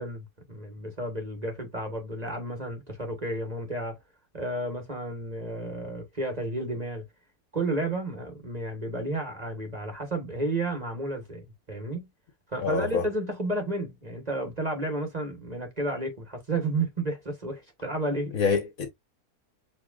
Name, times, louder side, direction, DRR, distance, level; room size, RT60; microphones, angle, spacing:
voice 1, 0.0-4.0 4.3-7.0 7.5-12.1 12.5-18.3, right 1 dB, 25° right, 1.4 m, -32 dB
voice 2, 12.6-13.0 18.3-18.9, left 5 dB, 60° left, 1.6 m, -26 dB
7.1 x 3.1 x 2.4 m
omnidirectional pair, 1.7 m